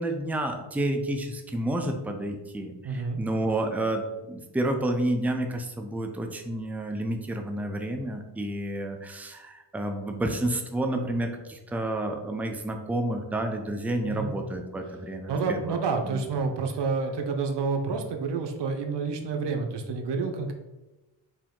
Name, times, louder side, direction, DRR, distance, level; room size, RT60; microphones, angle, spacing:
voice 1, 0.0-15.8 16.0-16.3, right 1 dB, 5° right, 4 dB, 0.5 m, -30 dB
voice 2, 2.8-3.2 14.1-14.3 15.3-20.5, right 4 dB, 70° right, 4 dB, 0.7 m, -29 dB
4.4 x 2.9 x 3.7 m, 1.0 s
cardioid pair, 60°, 44 cm